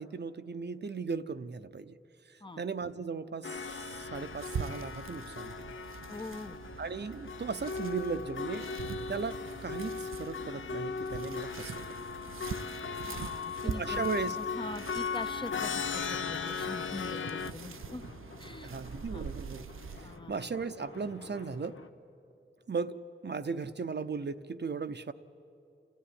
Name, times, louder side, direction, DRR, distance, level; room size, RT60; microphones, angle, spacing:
voice 1, 0.0-2.0 2.3-5.7 6.8-8.7 9.1-12.0 13.6-14.4 18.6-19.7 20.0-21.8 22.7-25.1, right 5 dB, 55° right, 10 dB, 0.7 m, -37 dB
sound 1, 3.4-17.5, left 5 dB, 75° left, 0.6 m, -37 dB
sound 2, 3.5-20.2, right 6 dB, 90° right, 0.6 m, -44 dB
voice 2, 6.1-6.6 13.1-14.1 14.4-18.1 18.4-18.7 19.1-19.3 20.0-20.4, left 2 dB, 25° left, 9 dB, 0.7 m, -43 dB
sound 3, 15.9-21.9, left 4 dB, 90° left, 1.1 m, -51 dB
29.5 x 14.5 x 9.7 m, 2.8 s
wide cardioid pair, 80°, 21 cm